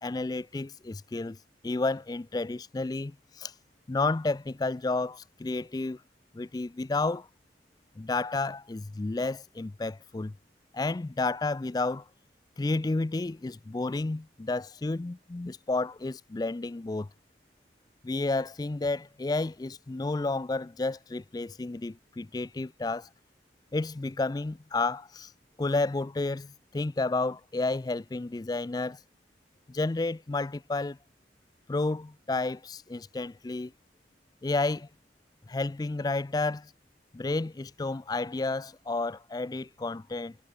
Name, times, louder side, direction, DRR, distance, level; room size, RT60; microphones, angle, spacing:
voice 1, 0.0-1.4 1.6-3.5 3.9-6.0 6.3-7.3 8.0-10.3 10.7-12.1 12.6-17.1 18.0-23.1 23.7-25.3 25.6-29.0 29.7-31.0 31.7-33.7 34.4-34.9 35.5-36.7 37.1-40.4, left 3 dB, 20° left, 0.3 m, -31 dB
head